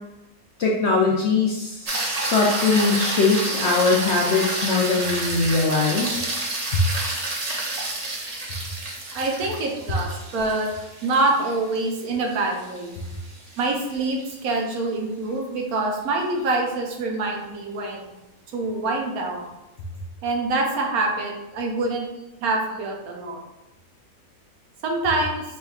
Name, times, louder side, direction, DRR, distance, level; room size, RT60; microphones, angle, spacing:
voice 1, 0.6-6.2 6.7-6.8, left 4 dB, 65° left, -2 dB, 0.7 m, -21 dB
sound 1, 1.9-14.3 18.7-18.8, right 2 dB, 55° right, 0.4 m, -30 dB
voice 2, 9.1-10.7 11.0-13.0 13.6-18.1 18.5-19.4 20.2-22.1 22.4-23.4 24.8-25.4, right 2 dB, 75° right, 1 dB, 1.2 m, -25 dB
4.5 x 3.1 x 2.3 m, 0.96 s
omnidirectional pair, 1.6 m